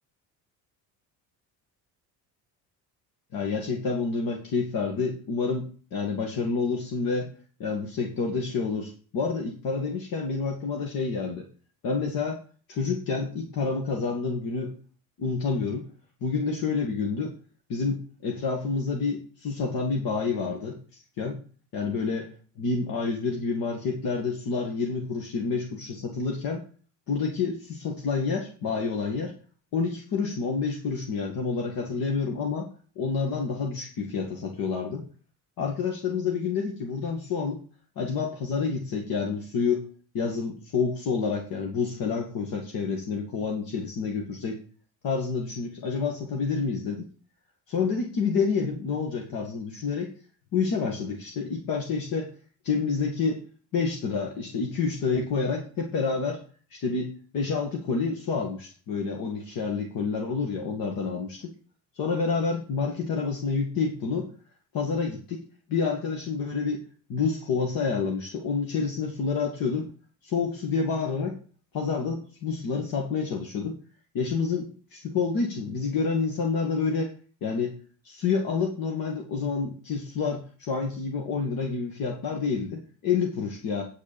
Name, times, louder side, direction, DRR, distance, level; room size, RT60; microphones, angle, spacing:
voice 1, 3.3-7.3 7.6-11.5 11.8-12.4 12.7-14.7 15.2-15.9 16.2-17.3 17.7-21.4 21.7-22.3 22.6-26.6 27.1-29.3 29.7-32.7 33.0-35.1 35.6-37.6 38.0-39.8 40.1-44.6 45.0-47.1 47.7-50.1 50.5-52.3 52.6-53.4 53.7-56.4 56.7-61.5 62.0-64.3 64.7-65.4 65.7-66.8 67.1-69.9 70.2-71.4 71.7-73.8 74.1-77.1 77.4-77.7 78.0-83.8, left 5 dB, 60° left, 1 dB, 2.3 m, -28 dB
9.6 x 6.5 x 7.1 m, 0.41 s
cardioid pair, 145°, 38 cm